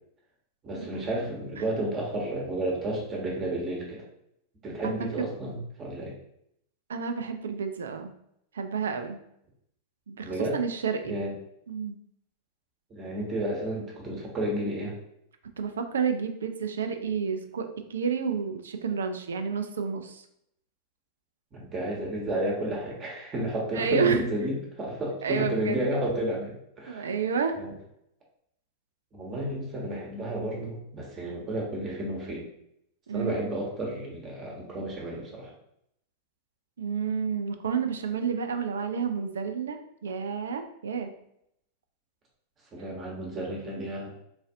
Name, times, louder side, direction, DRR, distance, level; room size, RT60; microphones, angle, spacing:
voice 1, 0.6-4.0 4.6-6.1 10.2-10.6 11.0-11.3 12.9-14.9 21.5-27.1 27.5-27.7 29.1-32.5 33.1-35.5 42.7-44.1, right 1 dB, 25° right, -2 dB, 1.0 m, -32 dB
voice 2, 6.9-8.1 8.5-9.2 10.1-11.2 11.7-12.0 15.6-20.2 23.7-24.2 25.2-25.8 26.9-27.6 33.1-33.3 36.8-41.1, right 6 dB, 65° right, 7 dB, 0.3 m, -30 dB
3.9 x 2.5 x 2.6 m, 0.74 s
figure-of-eight pair, 90°, 0 cm